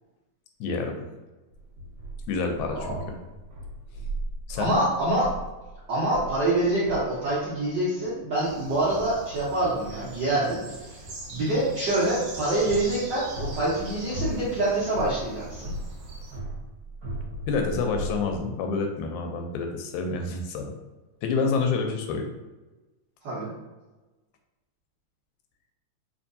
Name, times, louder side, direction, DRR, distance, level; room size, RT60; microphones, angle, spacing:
voice 1, 0.6-1.0 2.3-3.1 4.5-4.8 17.5-20.7 21.2-22.3, left 4 dB, 80° left, 3 dB, 1.9 m, -28 dB
sound 1, 1.5-7.5 7.8-8.5 8.8-10.3 10.7-18.4, equal, 50° right, 1.4 m, -38 dB
voice 2, 2.6-3.0 4.6-5.3 5.9-15.7 23.2-23.5, right 1 dB, 85° right, -8 dB, 0.9 m, -26 dB
sound 2, 8.4-16.4, right 2 dB, 70° right, 1.7 m, -42 dB
4.4 x 2.8 x 2.6 m, 1.1 s
omnidirectional pair, 3.3 m